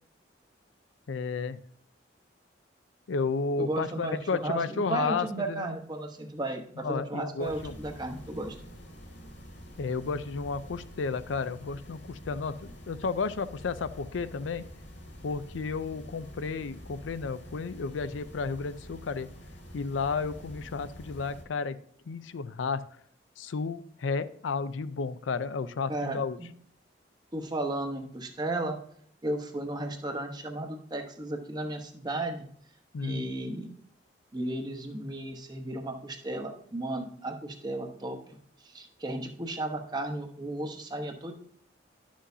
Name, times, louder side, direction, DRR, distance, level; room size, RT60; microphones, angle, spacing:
voice 1, 1.1-1.6 3.1-5.6 6.8-7.7 9.8-14.7 15.2-19.3 19.7-21.8 22.1-22.8 23.4-26.4 32.9-33.2, left 4 dB, 90° left, 13 dB, 0.5 m, -32 dB
voice 2, 3.6-8.6 25.9-26.5 27.3-28.8 29.2-32.5 33.0-33.7 34.3-38.2 38.6-41.3, right 1 dB, 20° right, 4 dB, 0.9 m, -34 dB
sound 1, 7.4-21.4, equal, 70° left, 2.3 m, -47 dB
11.0 x 6.3 x 2.7 m, 0.63 s
head